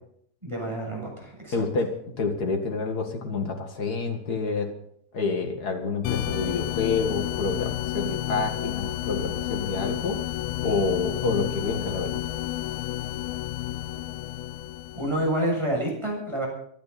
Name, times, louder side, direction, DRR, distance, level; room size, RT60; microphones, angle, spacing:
voice 1, 0.4-1.5 14.9-16.5, right 1 dB, 5° right, -2 dB, 6.9 m, -28 dB
voice 2, 1.5-1.9 2.2-4.7 5.1-10.2 10.6-12.3, left 4 dB, 55° left, 3 dB, 1.0 m, -28 dB
sound 1, 6.0-15.4, left 14 dB, 85° left, 3.2 m, -31 dB
25.0 x 13.0 x 4.2 m, 0.66 s
omnidirectional pair, 5.0 m